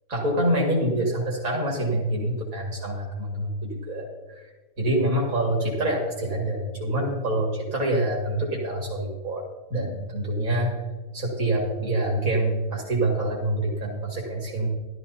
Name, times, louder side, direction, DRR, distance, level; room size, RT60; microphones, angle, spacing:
voice 1, 0.1-4.4 4.8-10.8 11.1-14.7, right 1 dB, 75° right, -2 dB, 2.5 m, -26 dB
14.0 x 12.5 x 2.8 m, 1.2 s
omnidirectional pair, 1.4 m